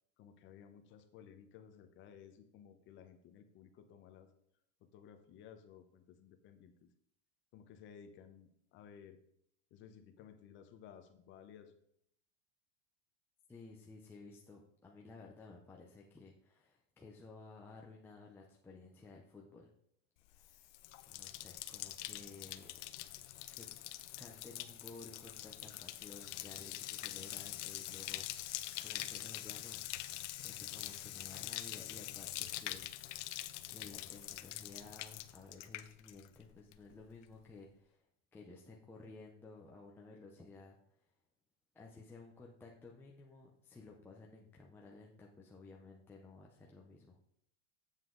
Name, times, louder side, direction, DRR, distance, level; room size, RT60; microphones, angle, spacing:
voice 1, 0.2-4.3 4.8-6.9 7.5-9.2 9.7-11.8, left 8 dB, 35° left, 8 dB, 0.8 m, -57 dB
voice 2, 13.5-19.7 20.3-20.8 21.1-22.7 23.5-23.7 24.2-29.8 30.4-33.2 33.7-38.1 38.3-41.1 41.7-47.2, left 3 dB, 5° left, -2 dB, 0.5 m, -55 dB
Bathtub (filling or washing), 20.3-36.4 36.7-37.2, left 15 dB, 75° left, 0.7 m, -45 dB
8.0 x 7.3 x 3.8 m, 0.70 s
supercardioid pair, 155°, 36 cm